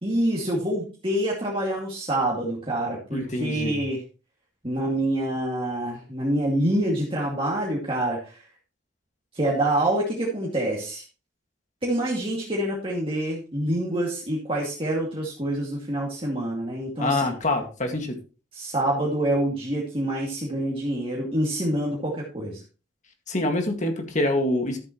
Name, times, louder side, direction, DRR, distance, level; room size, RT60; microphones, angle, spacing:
voice 1, 0.0-4.0 4.6-8.4 9.3-11.0 11.8-17.3 18.5-22.6, right 1 dB, 30° right, -4 dB, 2.4 m, -26 dB
voice 2, 3.1-3.8 17.0-18.2 23.3-24.8, left 1 dB, 40° left, 4 dB, 2.1 m, -25 dB
13.5 x 7.6 x 3.1 m, 0.34 s
head